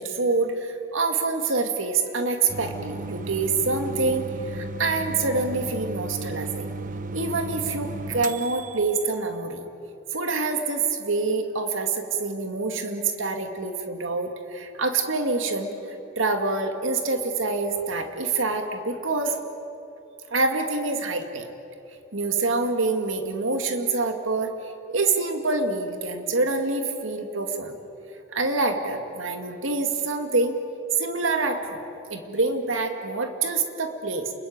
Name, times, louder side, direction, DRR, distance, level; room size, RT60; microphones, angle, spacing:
voice 1, 0.0-6.7 7.1-9.6 10.1-15.7 16.2-19.4 20.3-21.5 22.1-24.5 24.9-27.8 28.3-30.6 30.9-31.8 32.1-34.3, right 3 dB, 80° right, 5 dB, 2.3 m, -26 dB
sound 1, 2.5-9.0, right 3 dB, 40° right, 1.0 m, -35 dB
29.5 x 21.5 x 8.9 m, 2.9 s
head